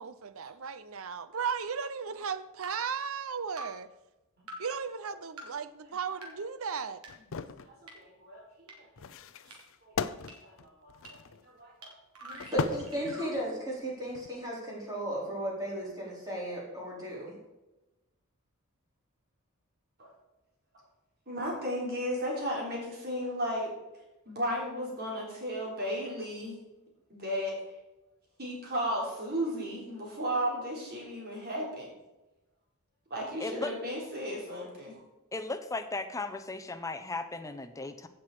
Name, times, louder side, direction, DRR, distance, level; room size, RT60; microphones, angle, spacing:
voice 1, 0.0-3.9 4.6-7.0, right 6 dB, 65° right, 0.7 m, -36 dB
sound 1, 1.6-1.7 2.6-2.7 3.6-3.7 4.5-4.6 5.4-5.5 6.2-6.3 7.0-7.1 7.9-8.0 8.7-8.8 9.5-9.6 10.3-10.4 11.0-11.1 11.8-11.9 12.1-13.3, right 1 dB, 85° right, 2.9 m, -44 dB
sound 2, 7.1-7.7 9.0-11.4 12.3-13.5 14.1-14.3, left 5 dB, 60° left, 0.5 m, -37 dB
voice 2, 7.7-8.4 8.8-8.9 9.5-9.6 9.8-9.9 10.4-11.9 12.2-12.5 20.0-20.1 21.3-23.7 24.3-26.6 27.1-27.6 28.4-31.9 33.1-35.0, equal, 45° right, 3.7 m, -35 dB
voice 3, 12.5-17.4, right 1 dB, 15° right, 4.1 m, -35 dB
voice 4, 33.4-33.7 35.3-38.1, left 3 dB, 15° left, 0.8 m, -36 dB
15.5 x 6.1 x 4.9 m
head